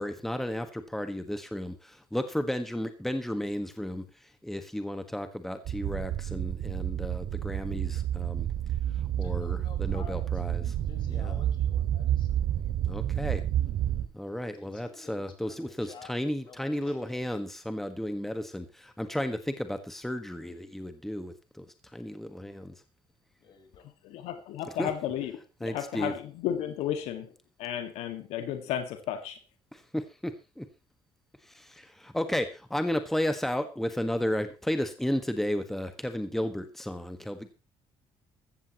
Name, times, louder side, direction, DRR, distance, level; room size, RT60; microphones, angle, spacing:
voice 1, 0.0-8.5 9.2-10.7 11.1-11.4 12.8-13.4 14.1-21.7 21.9-22.7 24.6-24.9 25.6-26.1 29.7-30.6 31.4-37.5, left 1 dB, 5° left, 8 dB, 1.5 m, -33 dB
sound 1, 5.6-14.0, right 11 dB, 70° right, 2.0 m, -30 dB
voice 2, 9.2-12.5 14.6-16.1 16.4-17.3 23.4-23.8, left 6 dB, 50° left, 5 dB, 4.5 m, -51 dB
voice 3, 24.2-25.3 25.6-27.3 27.6-29.4, left 10 dB, 85° left, 7 dB, 1.8 m, -33 dB
15.0 x 14.5 x 3.0 m, 0.29 s
cardioid pair, 115°, 11 cm